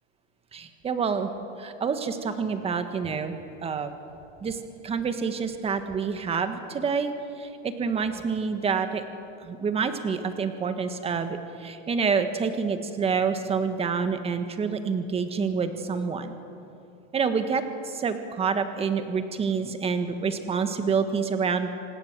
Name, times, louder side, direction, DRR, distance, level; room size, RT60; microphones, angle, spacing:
voice 1, 0.5-1.3 1.6-3.3 3.6-3.9 4.4-9.0 9.4-16.4 17.1-21.7, right 5 dB, 20° right, 8 dB, 1.6 m, -27 dB
27.0 x 19.0 x 7.5 m, 2.7 s
supercardioid pair, 150°, 33 cm